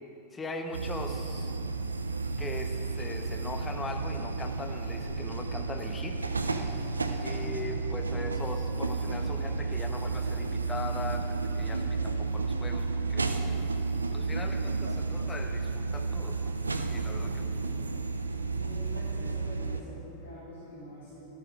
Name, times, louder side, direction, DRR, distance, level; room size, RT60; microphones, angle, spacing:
voice 1, 0.3-1.6 2.4-6.3 7.2-13.3 14.1-16.5 16.9-17.4, left 2 dB, 15° left, 5 dB, 1.2 m, -40 dB
sound 1, 0.7-19.8, right 4 dB, 80° right, 0.7 m, -32 dB
voice 2, 7.1-8.4 16.9-17.8 18.5-21.3, equal, 60° left, -10 dB, 3.8 m, -46 dB
13.5 x 13.0 x 4.9 m, 2.9 s
figure-of-eight pair, 90°, 0 cm